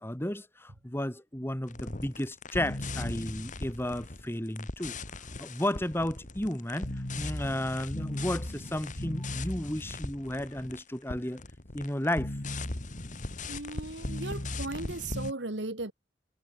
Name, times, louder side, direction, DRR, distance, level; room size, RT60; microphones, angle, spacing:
voice 1, 0.0-5.0 5.4-11.4 11.7-12.3, left 1 dB, 10° left, 1.8 m, -33 dB
sound 1, 1.7-10.8 11.1-15.3, left 2 dB, 45° left, 2.1 m, -38 dB
voice 2, 13.5-15.9, right 2 dB, 65° right, 2.1 m, -36 dB
head